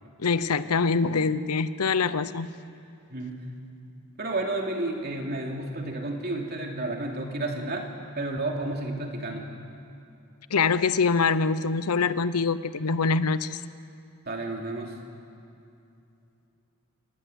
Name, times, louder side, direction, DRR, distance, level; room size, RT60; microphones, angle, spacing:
voice 1, 0.2-2.5 10.5-13.6, left 4 dB, 90° left, 14 dB, 0.8 m, -24 dB
voice 2, 3.1-3.4 4.2-9.5 14.3-15.0, right 2 dB, 45° right, 1 dB, 2.9 m, -31 dB
28.0 x 19.0 x 8.2 m, 2.7 s
head